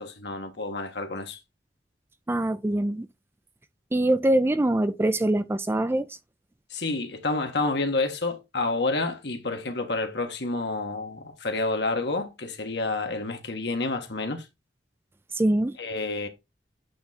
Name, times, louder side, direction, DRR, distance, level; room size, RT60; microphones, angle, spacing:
voice 1, 0.0-1.4 6.7-14.4 15.8-16.3, left 3 dB, 70° left, 1.6 m, -29 dB
voice 2, 2.3-3.1 3.9-6.1 15.4-15.8, right 1 dB, 15° right, 0.4 m, -23 dB
8.6 x 3.7 x 4.2 m
head